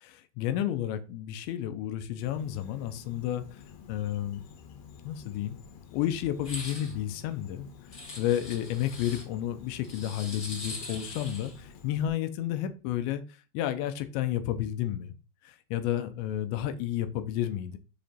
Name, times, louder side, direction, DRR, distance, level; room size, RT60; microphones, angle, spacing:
voice 1, 0.0-3.4 3.9-4.5 5.0-5.6 5.9-7.7 8.2-13.2 13.5-15.1 15.5-17.8, left 11 dB, 90° left, 3.0 m, -31 dB
Insect, 2.2-12.1, left 7 dB, 65° left, 2.9 m, -50 dB
sound 1, 6.4-6.9 7.9-9.2 9.8-11.6, left 2 dB, 30° left, 1.6 m, -42 dB
6.8 x 5.3 x 4.3 m
omnidirectional pair, 5.3 m